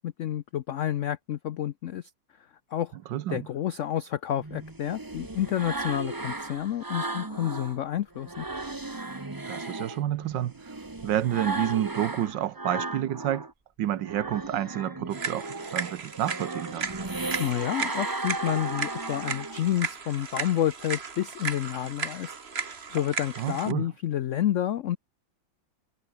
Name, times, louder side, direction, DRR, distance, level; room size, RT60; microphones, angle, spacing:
voice 1, 0.0-2.1 2.7-2.9 3.3-8.5 17.4-25.0, left 11 dB, 80° left, 0.6 m, -29 dB
voice 2, 3.1-3.5 9.5-10.8 11.0-13.5 13.8-16.9 23.4-23.9, right 12 dB, 75° right, 1.6 m, -29 dB
sound 1, 4.3-7.8 8.1-13.5 13.9-19.8, right 2 dB, 15° right, 0.9 m, -36 dB
sound 2, 15.1-23.7, right 5 dB, 35° right, 1.6 m, -35 dB
omnidirectional pair, 2.0 m